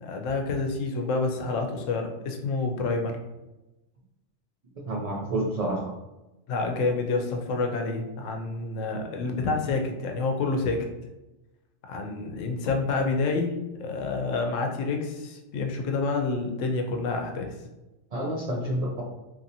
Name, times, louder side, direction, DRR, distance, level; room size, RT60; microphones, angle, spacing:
voice 1, 0.0-3.1 6.5-10.9 11.9-17.5, left 3 dB, 90° left, 4 dB, 0.9 m, -28 dB
voice 2, 4.9-5.8 18.1-19.0, right 1 dB, 75° right, -3 dB, 0.3 m, -28 dB
2.9 x 2.6 x 2.7 m, 1.0 s
omnidirectional pair, 1.3 m